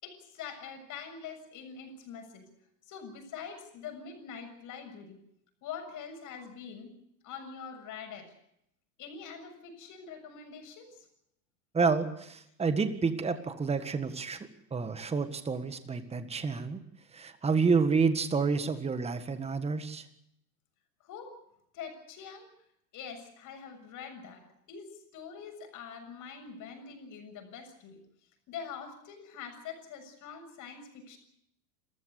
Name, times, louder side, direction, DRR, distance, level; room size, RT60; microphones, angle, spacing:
voice 1, 0.0-2.5 2.9-5.2 5.6-6.9 7.2-8.3 9.0-11.1 21.0-21.4 21.7-22.5 22.9-28.0 28.5-31.2, left 6 dB, 40° left, 5 dB, 7.1 m, -44 dB
voice 2, 11.7-14.4 14.7-16.8 17.1-20.0, right 5 dB, 10° right, 10 dB, 1.7 m, -29 dB
28.5 x 14.5 x 8.3 m, 0.77 s
hypercardioid pair, 120°, 50 cm